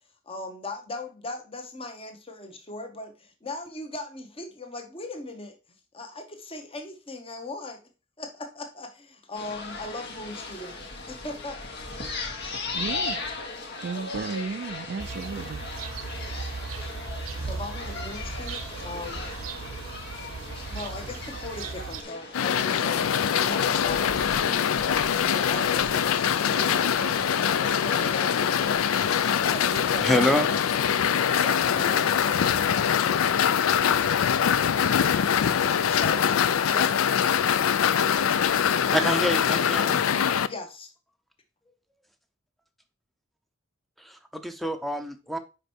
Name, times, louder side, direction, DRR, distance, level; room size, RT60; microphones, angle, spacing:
voice 1, 0.3-5.6 5.9-7.8 8.2-11.8 17.4-19.3 20.7-30.1 30.5-30.6 31.4-32.6 35.9-36.4 36.7-37.0 40.5-40.9, left 2 dB, 25° left, 1.1 m, -39 dB
sound 1, 9.3-28.8, left 3 dB, 55° left, 1.4 m, -38 dB
voice 2, 12.7-13.2 13.8-15.7, right 5 dB, 55° right, 0.4 m, -34 dB
sound 2, 15.0-22.0, right 4 dB, 80° right, 0.7 m, -37 dB
sound 3, 22.3-40.5, left 8 dB, 80° left, 0.4 m, -23 dB
voice 3, 30.0-30.5 38.9-40.0 44.0-45.4, equal, ahead, 0.7 m, -26 dB
5.3 x 5.0 x 4.5 m
head